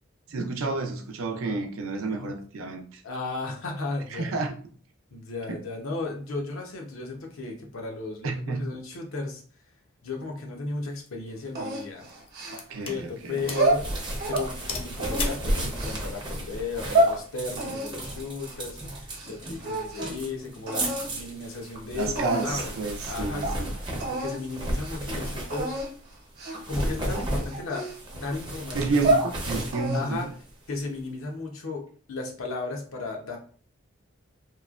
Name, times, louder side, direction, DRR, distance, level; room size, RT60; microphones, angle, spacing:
voice 1, 0.3-3.0 4.1-4.6 5.5-5.6 8.2-8.7 12.5-13.5 21.9-23.7 28.7-30.3, right 3 dB, 85° right, 0.5 m, -30 dB
voice 2, 3.0-4.3 5.1-9.4 10.0-12.0 12.9-13.9 14.3-22.6 23.0-25.8 26.7-27.8 28.1-29.0 29.9-30.3 30.7-31.8 32.1-33.4, left 3 dB, 85° left, 0.7 m, -35 dB
sound 1, 10.8-11.1 11.8-13.0 13.5-13.7 14.0-14.1 14.4-15.5, left 4 dB, 25° left, 0.3 m, -36 dB
sound 2, 11.6-12.9 13.4-14.5 15.0-16.0 16.6-17.2 17.6-19.3 19.6-20.2 20.7-21.1 21.8-21.9 22.2-22.7 23.1-23.2 23.4-23.6 24.0-24.4 24.7-25.0 25.5-25.9 26.4-26.7 27.1-28.3 28.8-29.3 29.7-30.2, right 1 dB, 50° right, 0.9 m, -28 dB
sound 3, 13.3-26.0 26.5-30.8, right 1 dB, 25° right, 0.5 m, -34 dB
3.0 x 2.2 x 2.4 m
head